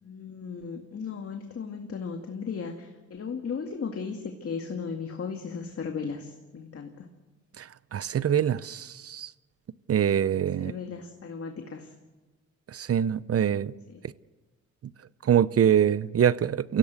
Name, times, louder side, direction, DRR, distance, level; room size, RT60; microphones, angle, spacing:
voice 1, 0.0-7.1 10.6-11.9 13.9-14.0, left 5 dB, 50° left, 2.2 m, -36 dB
voice 2, 7.6-9.3 9.9-10.7 12.7-13.7 15.2-16.8, right 9 dB, 50° right, 0.7 m, -24 dB
25.0 x 16.5 x 8.3 m
cardioid pair, 75°, 30 cm